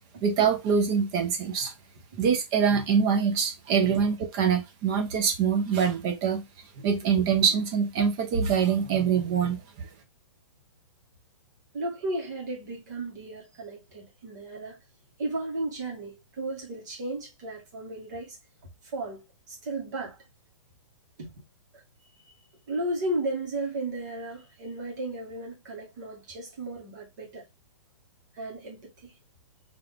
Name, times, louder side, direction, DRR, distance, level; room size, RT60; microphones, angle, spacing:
voice 1, 0.2-1.7 2.2-6.4 6.8-9.6, right 6 dB, 10° right, 0.3 m, -24 dB
voice 2, 11.7-14.8 15.2-18.4 18.9-19.2 19.5-20.2 21.2-21.3 22.7-27.4 28.3-29.1, right 2 dB, 35° right, 1.9 m, -34 dB
3.5 x 3.3 x 3.7 m
hypercardioid pair, 180°, 16 cm